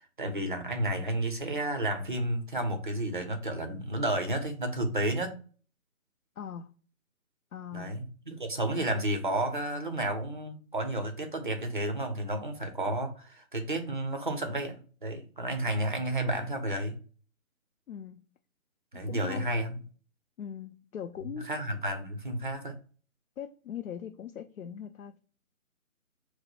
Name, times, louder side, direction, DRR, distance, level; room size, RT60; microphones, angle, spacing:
voice 1, 0.0-5.4 7.7-17.0 18.9-19.8 21.4-22.8, right 1 dB, 35° right, 0.6 m, -31 dB
voice 2, 6.4-6.7 7.5-8.0 17.9-18.2 19.1-19.5 20.4-21.5 23.4-25.2, left 8 dB, 70° left, 0.5 m, -40 dB
4.1 x 2.0 x 2.8 m
figure-of-eight pair, 165°, 42 cm